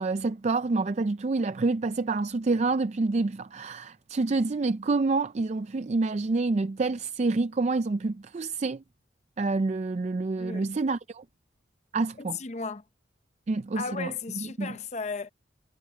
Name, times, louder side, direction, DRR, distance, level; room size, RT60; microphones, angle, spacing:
voice 1, 0.0-8.8 9.4-11.2 11.9-12.4 13.5-14.7, right 3 dB, 35° right, 0.4 m, -28 dB
voice 2, 12.2-12.8 13.7-15.3, left 5 dB, 35° left, 0.7 m, -35 dB
head